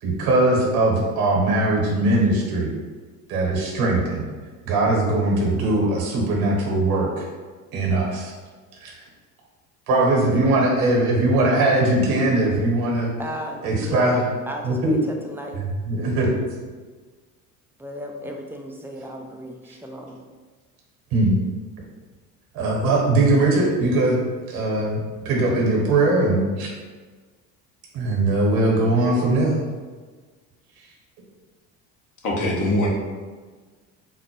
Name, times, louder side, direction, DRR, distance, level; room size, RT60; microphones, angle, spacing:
voice 1, 0.0-2.7 3.3-4.3 4.7-7.3 7.7-8.3 8.8-8.9 9.9-13.1 13.6-14.2 14.6-15.0 15.5-16.3 21.1-21.4 22.5-24.2 24.5-26.7 27.9-29.6, right 2 dB, 65° right, -2 dB, 1.1 m, -20 dB
voice 2, 9.9-10.5 13.2-15.6 17.8-20.2, equal, 5° right, 1 dB, 0.3 m, -34 dB
voice 3, 32.2-32.9, left 1 dB, 45° left, -2 dB, 1.0 m, -22 dB
4.0 x 2.1 x 3.0 m, 1.4 s
hypercardioid pair, 65°, 41 cm